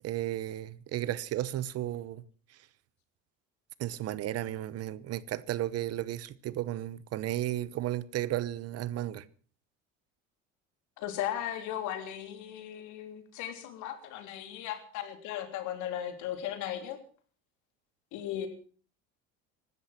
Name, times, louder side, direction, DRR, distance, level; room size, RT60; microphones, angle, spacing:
voice 1, 0.0-2.2 3.8-9.2, right 13 dB, 50° right, 1.0 m, -34 dB
voice 2, 11.0-17.0 18.1-18.5, left 11 dB, 70° left, 3.3 m, -37 dB
16.5 x 13.0 x 5.9 m
supercardioid pair, 110°, 31 cm